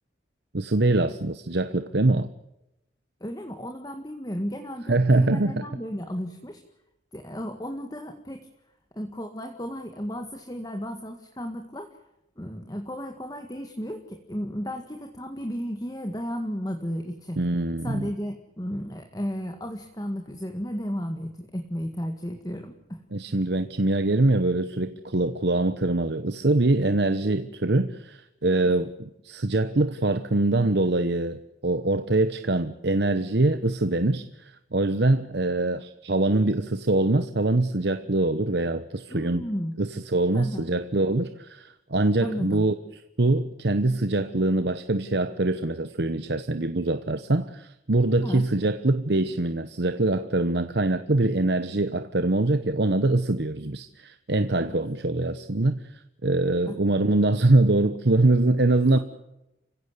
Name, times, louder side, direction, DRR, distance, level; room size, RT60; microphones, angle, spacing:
voice 1, 0.5-2.3 4.9-5.6 17.4-18.1 23.1-39.4 39.8-42.7 43.2-55.8 56.2-59.0, right 2 dB, 65° right, 1.0 m, -23 dB
voice 2, 3.2-6.6 7.1-8.5 9.0-11.9 12.4-17.4 17.8-23.0 28.6-28.8 39.1-39.7 40.3-40.7 42.2-42.6 48.2-48.5 54.6-54.9 56.7-56.8 58.9-59.0, equal, 20° left, 1.8 m, -34 dB
29.5 x 16.5 x 8.3 m
head